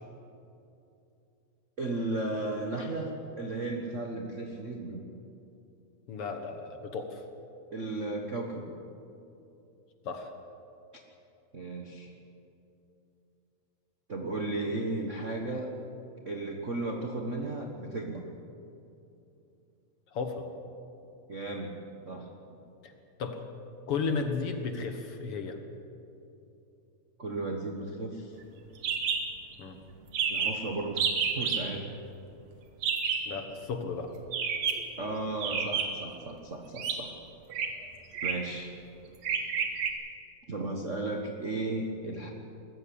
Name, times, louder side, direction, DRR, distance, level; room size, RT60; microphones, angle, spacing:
voice 1, 1.8-5.0 7.7-8.7 11.5-12.1 14.1-15.7 16.2-18.2 21.3-22.3 27.2-28.4 30.3-31.9 35.0-37.1 38.2-38.7 40.5-42.3, right 2 dB, 45° right, 2 dB, 0.9 m, -35 dB
voice 2, 6.1-7.2 10.0-10.3 20.1-20.5 22.8-22.9 23.2-25.6 29.6-29.8 33.3-34.2, left 4 dB, 55° left, 6 dB, 2.0 m, -34 dB
sound 1, 28.8-29.2 29.5-29.6 29.8-29.9 30.1-30.6 31.0-31.6 32.8-33.3 34.3-34.9 35.4-36.1 36.8-37.0 37.5-37.7 38.1-38.5 39.2-39.9, right 6 dB, 65° right, 2.8 m, -29 dB
21.5 x 14.5 x 8.6 m, 2.8 s
omnidirectional pair, 3.3 m